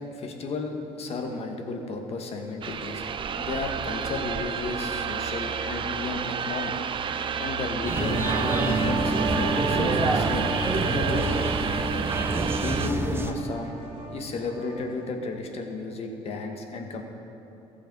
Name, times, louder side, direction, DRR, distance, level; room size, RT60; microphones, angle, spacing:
voice 1, 0.1-3.1 3.4-6.7 7.4-11.3 12.5-13.7 14.1-17.0, left 3 dB, 55° left, 3 dB, 1.5 m, -33 dB
sound 1, 2.6-12.9, right 7 dB, 40° right, 0.5 m, -31 dB
sound 2, 7.7-15.0, right 3 dB, 60° right, 2.4 m, -31 dB
sound 3, 7.8-13.3, right 2 dB, 20° right, 0.9 m, -28 dB
15.0 x 6.9 x 5.4 m, 3.0 s
supercardioid pair, 90°, 13 cm